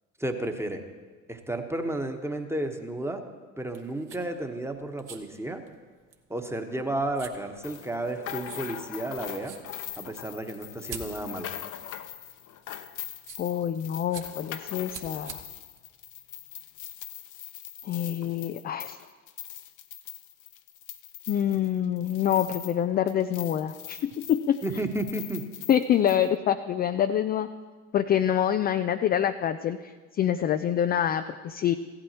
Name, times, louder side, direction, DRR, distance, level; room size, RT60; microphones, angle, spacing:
voice 1, 0.2-0.8 1.3-3.2 3.6-5.6 6.3-9.5 10.0-11.5 24.6-25.4, right 1 dB, 5° right, 6 dB, 1.2 m, -32 dB
sound 1, 3.6-16.8, right 7 dB, 45° right, 1.4 m, -48 dB
sound 2, 7.6-22.8 23.1-26.3, left 11 dB, 45° left, 0.8 m, -41 dB
voice 2, 13.4-15.4 17.8-19.0 21.3-24.6 25.7-27.5 27.9-31.7, left 10 dB, 25° left, 9 dB, 0.3 m, -26 dB
16.0 x 11.5 x 2.9 m, 1.4 s
figure-of-eight pair, 55°, 45 cm